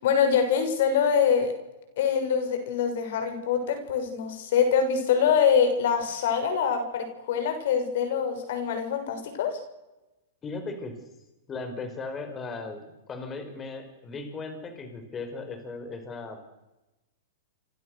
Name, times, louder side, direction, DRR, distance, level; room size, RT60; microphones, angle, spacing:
voice 1, 0.0-1.5 2.0-9.6, left 7 dB, 65° left, 7 dB, 6.7 m, -24 dB
voice 2, 10.4-11.0 11.5-12.8 13.1-16.4, left 3 dB, 20° left, 7 dB, 5.5 m, -37 dB
29.0 x 25.5 x 6.7 m, 1.0 s
hypercardioid pair, 130°, 0 cm